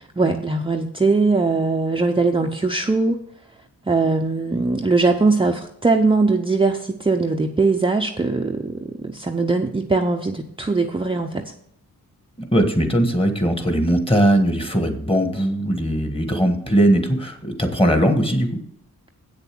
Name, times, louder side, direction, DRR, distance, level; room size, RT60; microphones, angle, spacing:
voice 1, 0.2-3.2 3.9-11.4, right 3 dB, 15° right, 2 dB, 0.6 m, -20 dB
voice 2, 12.4-18.6, right 1 dB, 15° left, 5 dB, 1.6 m, -19 dB
8.3 x 6.8 x 6.1 m, 0.71 s
wide cardioid pair, 100°, 34 cm